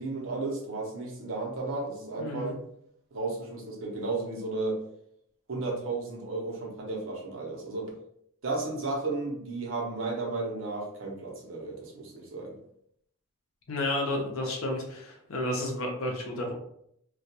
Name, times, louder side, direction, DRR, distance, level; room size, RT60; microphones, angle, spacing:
voice 1, 0.0-2.5 3.1-4.8 5.5-7.9 8.4-12.5, right 3 dB, 65° right, -1 dB, 0.7 m, -33 dB
voice 2, 2.2-2.5 13.7-16.5, left 1 dB, 75° left, 0 dB, 0.7 m, -31 dB
2.3 x 2.2 x 2.7 m, 0.72 s
head